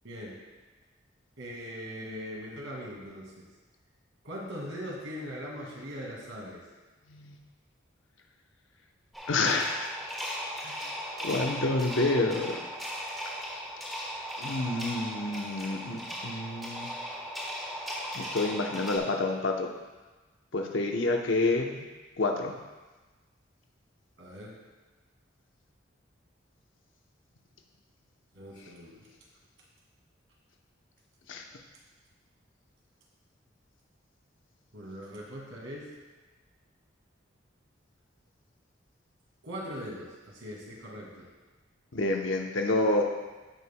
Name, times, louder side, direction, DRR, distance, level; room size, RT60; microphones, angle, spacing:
voice 1, 0.0-0.4 1.4-3.4 4.2-6.6 24.2-24.6 28.3-29.1 34.7-35.9 39.4-41.3, equal, 85° right, -3 dB, 2.1 m, -40 dB
sound 1, 9.1-19.0, equal, ahead, 1.3 m, -37 dB
voice 2, 9.3-9.9 10.6-10.9 11.2-12.6 14.4-16.9 18.1-19.7 20.5-21.8 22.2-22.5 31.3-31.4 41.9-43.1, left 2 dB, 75° left, 2 dB, 0.8 m, -28 dB
15.5 x 5.6 x 2.2 m, 1.2 s
head